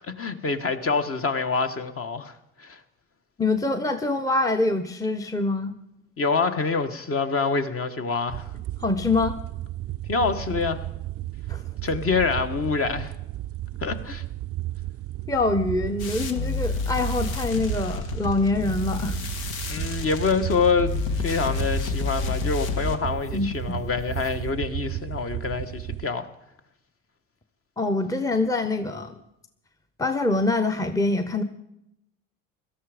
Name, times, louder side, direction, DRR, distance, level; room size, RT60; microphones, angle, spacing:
voice 1, 0.0-2.3 2.6-2.8 6.2-8.5 10.1-10.8 11.8-13.1 13.8-14.2 19.7-26.3, left 4 dB, 35° left, 1.4 m, -26 dB
voice 2, 3.4-5.8 8.8-9.4 11.5-11.6 15.3-19.2 23.3-23.8 27.8-29.1 30.0-31.4, left 2 dB, 10° left, 0.9 m, -25 dB
sound 1, 8.3-26.1, right 15 dB, 40° right, 0.4 m, -33 dB
sound 2, 16.0-24.5, left 5 dB, 70° left, 1.7 m, -31 dB
17.5 x 13.0 x 5.0 m
hypercardioid pair, 75°, 38 cm